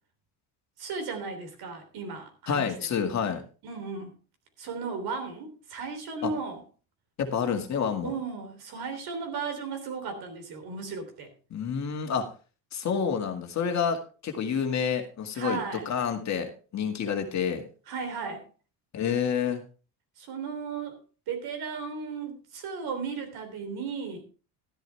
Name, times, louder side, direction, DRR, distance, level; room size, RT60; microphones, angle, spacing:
voice 1, 0.8-2.7 3.6-4.1 4.6-6.6 8.0-11.3 15.3-15.9 17.9-18.4 20.2-21.0 21.3-24.2, right 5 dB, 60° right, 3.5 m, -35 dB
voice 2, 2.5-3.4 6.2-6.3 7.2-8.1 11.5-12.3 12.7-15.6 15.9-17.6 18.9-19.6, left 7 dB, 40° left, 2.1 m, -28 dB
13.0 x 10.5 x 3.4 m
cardioid pair, 130°, 42 cm